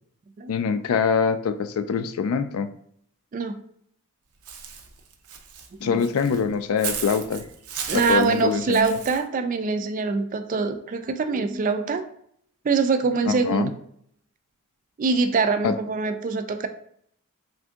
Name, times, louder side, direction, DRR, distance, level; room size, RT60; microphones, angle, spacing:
voice 1, 0.5-2.7 5.8-7.4 7.9-9.0 13.3-13.7 15.6-15.7, left 6 dB, 70° left, 11 dB, 0.3 m, -24 dB
Walk footsteps / Bird, 4.4-9.2, right 7 dB, 90° right, 0.6 m, -36 dB
voice 2, 7.9-12.1 12.6-13.7 15.0-16.7, right 4 dB, 35° right, 8 dB, 0.3 m, -24 dB
3.6 x 2.6 x 3.4 m, 0.67 s
head